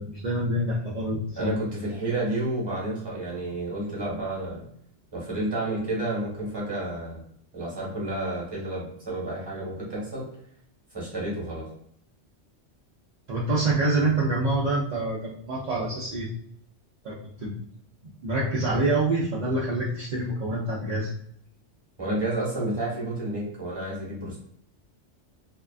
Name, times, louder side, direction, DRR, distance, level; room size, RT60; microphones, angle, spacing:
voice 1, 0.0-1.5 13.3-16.3 17.0-17.2 17.4-17.5 18.2-21.1, right 2 dB, 50° right, -7 dB, 0.5 m, -26 dB
voice 2, 1.4-4.6 5.1-7.2 7.5-10.2 10.9-11.7 22.0-24.4, right 1 dB, 20° right, -5 dB, 1.1 m, -30 dB
2.8 x 2.3 x 2.3 m, 0.68 s
omnidirectional pair, 1.2 m